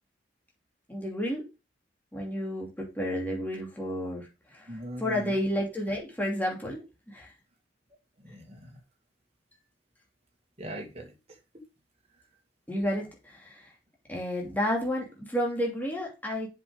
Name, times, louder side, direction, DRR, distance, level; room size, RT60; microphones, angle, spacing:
voice 1, 0.9-1.4 2.1-4.7 5.0-7.3 12.7-13.7 14.1-16.5, equal, 10° left, 2.7 m, -31 dB
voice 2, 4.7-5.4 8.2-8.7 10.6-11.4, equal, 35° right, 2.2 m, -40 dB
7.4 x 5.6 x 5.0 m
head